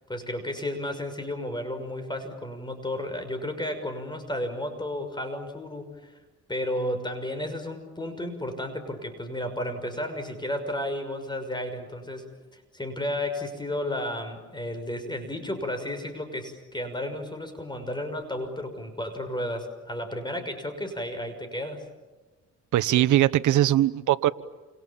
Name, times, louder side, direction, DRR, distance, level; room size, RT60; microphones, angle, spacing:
voice 1, 0.1-6.1 6.5-12.3 12.7-21.8, left 1 dB, 15° left, 8 dB, 6.1 m, -33 dB
voice 2, 22.7-24.3, right 13 dB, 80° right, 12 dB, 1.1 m, -21 dB
29.5 x 27.5 x 7.3 m, 1.2 s
cardioid pair, 90°, 30 cm